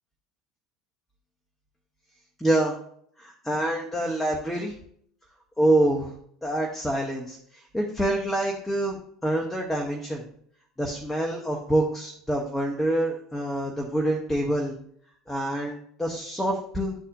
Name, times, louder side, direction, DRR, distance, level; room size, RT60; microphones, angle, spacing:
voice 1, 2.4-2.7 3.2-4.7 5.6-6.1 6.4-9.0 9.2-10.2 10.8-14.7 15.3-16.9, right 1 dB, 5° left, -1 dB, 1.0 m, -26 dB
11.0 x 4.1 x 2.6 m, 0.65 s
figure-of-eight pair, 70°, 2 cm